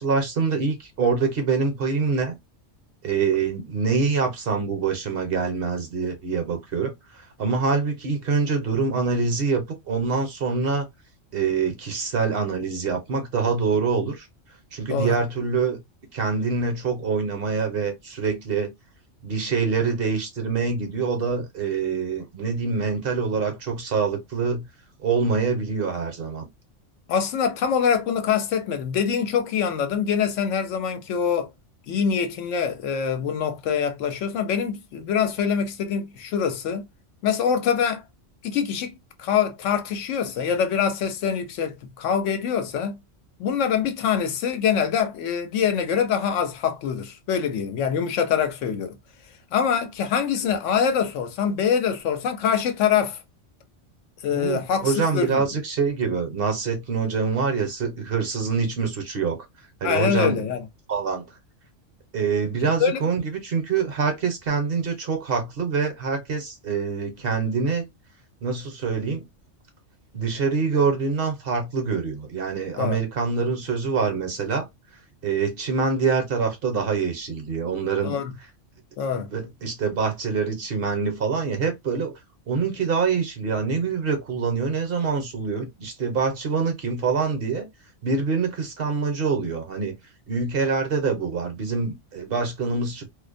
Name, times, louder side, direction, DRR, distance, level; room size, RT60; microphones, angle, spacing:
voice 1, 0.0-2.3 3.0-6.9 7.4-10.9 11.3-14.3 14.7-15.8 16.1-18.7 19.2-24.6 25.0-26.5 54.3-59.5 59.8-60.4 60.9-61.2 62.1-67.8 68.4-69.2 70.1-74.7 75.2-78.2 79.1-82.1 82.5-87.7 88.0-89.9 90.3-93.1, right 5 dB, 55° right, 0.8 m, -25 dB
voice 2, 27.1-31.5 31.9-36.9 37.2-38.0 38.4-43.0 43.4-49.0 49.5-53.2 54.2-55.6 59.8-60.6 62.8-63.0 72.8-73.0 78.0-78.3 79.0-79.3, left 7 dB, 85° left, 0.9 m, -24 dB
2.5 x 2.1 x 2.4 m
omnidirectional pair, 1.3 m